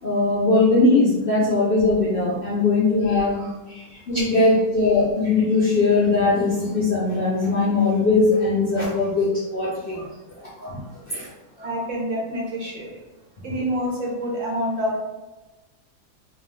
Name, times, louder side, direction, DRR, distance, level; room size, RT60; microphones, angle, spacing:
voice 1, 0.0-10.0 10.4-11.3 11.6-11.7, left 3 dB, 55° left, -7 dB, 0.6 m, -20 dB
voice 2, 11.6-12.9 13.4-15.0, equal, 65° right, -2 dB, 0.9 m, -27 dB
2.6 x 2.3 x 3.3 m, 1.1 s
omnidirectional pair, 1.6 m